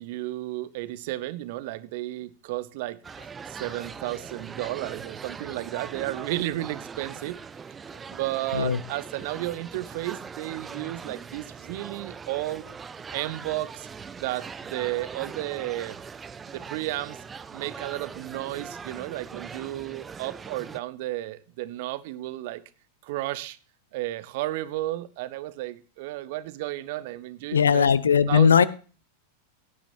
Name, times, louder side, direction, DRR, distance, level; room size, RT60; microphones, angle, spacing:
voice 1, 0.0-3.0 3.5-7.4 8.1-12.6 13.1-13.9 14.2-16.0 16.5-17.2 17.5-22.6 23.0-23.6 23.9-27.9 28.3-28.6, right 16 dB, 50° right, 17 dB, 0.9 m, -33 dB
sound 1, 3.0-20.8, right 6 dB, 20° right, 0.6 m, -41 dB
voice 2, 27.5-28.6, left 7 dB, 70° left, 18 dB, 0.7 m, -19 dB
17.0 x 10.5 x 2.8 m, 0.36 s
figure-of-eight pair, 90°, 0 cm